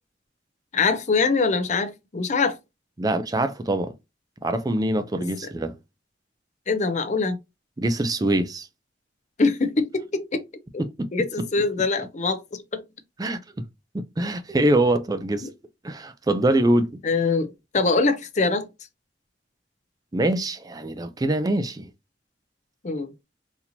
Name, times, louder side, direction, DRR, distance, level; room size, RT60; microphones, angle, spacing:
voice 1, 0.7-2.6 5.2-5.3 6.7-7.4 9.4-10.4 10.7-10.8 11.1-12.8 17.0-18.7 22.8-23.1, left 4 dB, 40° left, 0.6 m, -23 dB
voice 2, 3.0-3.9 4.4-5.8 7.8-8.7 10.8-11.1 13.2-13.4 13.9-15.5 15.8-17.0 20.1-21.9, right 1 dB, 20° right, 0.4 m, -24 dB
4.2 x 2.8 x 2.7 m
head